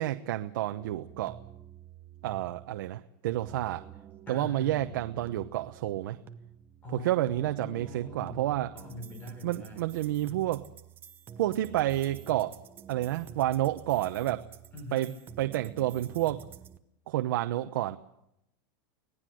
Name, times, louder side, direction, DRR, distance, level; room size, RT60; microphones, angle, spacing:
voice 1, 0.0-1.4 2.2-3.9 4.3-6.2 6.9-8.7 9.4-10.6 11.4-12.5 12.9-14.4 14.9-15.1 15.4-16.5 17.1-18.0, right 14 dB, 75° right, 7 dB, 1.0 m, -30 dB
sound 1, 0.8-16.8, right 9 dB, 20° right, 0.9 m, -49 dB
voice 2, 4.3-5.0 6.8-8.4 8.7-9.8 14.7-15.1, left 1 dB, 15° left, 8 dB, 4.6 m, -43 dB
25.5 x 18.0 x 7.8 m, 0.82 s
supercardioid pair, 175°, 11 cm